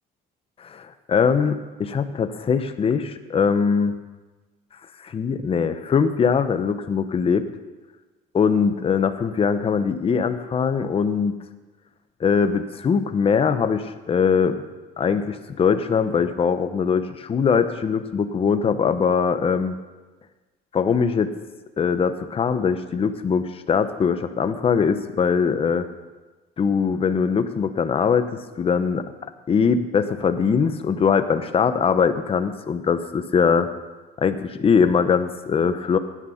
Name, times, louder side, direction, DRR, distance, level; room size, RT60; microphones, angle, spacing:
voice 1, 0.6-4.0 5.0-7.5 8.3-11.3 12.2-14.6 15.0-19.8 20.7-21.3 21.8-25.9 26.6-29.1 29.5-33.7 34.2-36.0, left 6 dB, 35° left, 9 dB, 0.9 m, -21 dB
16.0 x 10.0 x 5.6 m, 1.2 s
cardioid pair, 110°, 17 cm